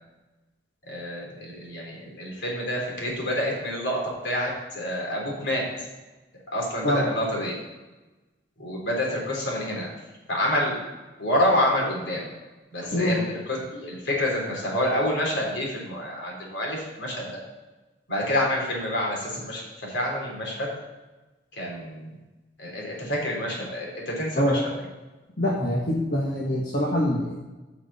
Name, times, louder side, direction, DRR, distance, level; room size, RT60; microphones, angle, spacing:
voice 1, 0.9-4.0 4.2-5.6 6.5-7.5 8.6-9.9 10.3-10.8 11.2-12.2 12.7-17.3 18.1-20.7 21.5-22.2 22.6-24.6, left 1 dB, 75° left, -2 dB, 3.7 m, -28 dB
voice 2, 25.4-27.4, left 1 dB, 50° left, -3 dB, 1.4 m, -24 dB
15.5 x 6.0 x 4.2 m, 1.1 s
head